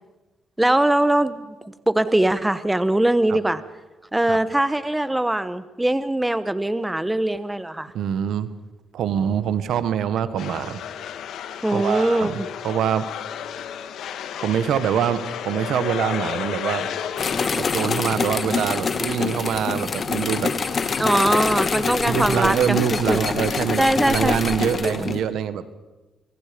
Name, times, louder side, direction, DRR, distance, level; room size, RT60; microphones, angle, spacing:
voice 1, 0.6-1.5 1.9-3.6 4.1-7.9 11.6-12.5 21.0-23.2 23.8-24.4 24.8-25.1, right 1 dB, 10° right, 13 dB, 1.1 m, -21 dB
voice 2, 7.9-8.5 8.9-10.8 11.7-12.4 12.6-13.1 14.4-16.9 17.6-20.5 22.0-25.7, right 9 dB, 75° right, 13 dB, 1.4 m, -24 dB
sound 1, 10.4-17.4, left 9 dB, 75° left, 1.7 m, -32 dB
sound 2, 17.2-25.2, left 5 dB, 40° left, 1.8 m, -25 dB
26.0 x 24.0 x 5.3 m, 1.1 s
cardioid pair, 90°, 0 cm